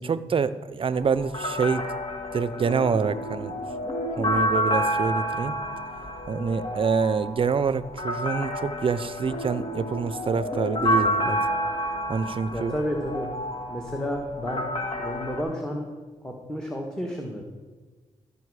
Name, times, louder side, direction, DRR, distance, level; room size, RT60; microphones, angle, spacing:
voice 1, 0.0-1.9 2.3-3.6 4.1-5.6 6.3-11.4 12.1-12.7, right 5 dB, 45° right, 15 dB, 0.5 m, -26 dB
sound 1, 0.9-15.4, equal, 45° left, 1.8 m, -29 dB
voice 2, 12.5-13.3 13.7-14.7 15.0-15.9 16.2-17.4, equal, 5° left, 1 dB, 1.4 m, -31 dB
13.0 x 5.2 x 4.8 m, 1.4 s
cardioid pair, 60°, 13 cm